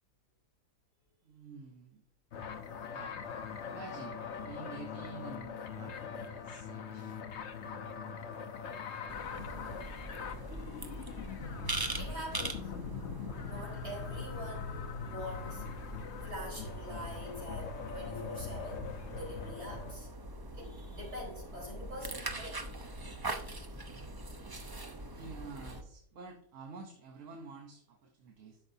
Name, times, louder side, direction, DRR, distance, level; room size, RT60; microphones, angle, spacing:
voice 1, 1.2-2.0 2.9-3.2 3.7-4.2 4.4-7.2 25.1-28.6, right 4 dB, 65° right, 3 dB, 1.3 m, -49 dB
sound 1, 2.3-19.9, left 6 dB, 60° left, 1.0 m, -42 dB
sound 2, 9.1-25.8, right 2 dB, 30° right, 0.4 m, -42 dB
voice 2, 12.0-12.7 13.4-15.6 16.2-18.9 19.2-20.1 20.6-22.6, equal, 50° right, -3 dB, 4.4 m, -44 dB
12.0 x 6.3 x 2.7 m, 0.69 s
omnidirectional pair, 1.4 m